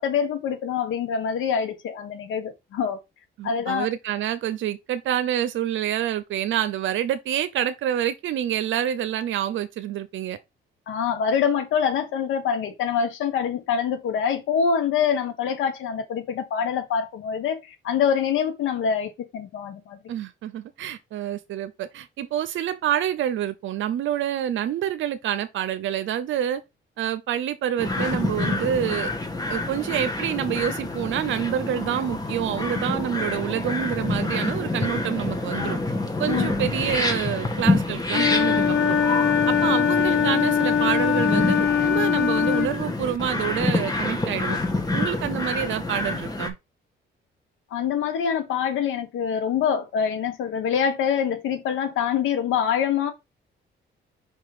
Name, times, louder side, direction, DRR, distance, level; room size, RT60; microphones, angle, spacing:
voice 1, 0.0-3.0 3.4-3.9 10.9-20.0 36.3-36.5 47.7-53.1, left 7 dB, 85° left, 1.5 m, -25 dB
voice 2, 3.4-10.4 20.1-26.6 27.0-29.1 29.5-35.8 36.2-39.0 39.5-44.6 44.9-46.6, right 10 dB, 75° right, 0.7 m, -27 dB
sound 1, 27.8-46.5, left 2 dB, 20° left, 1.6 m, -27 dB
Wind instrument woodwind instrument, 38.1-42.7, left 8 dB, 65° left, 3.8 m, -21 dB
5.4 x 3.8 x 4.9 m
cardioid pair, 90°, 20 cm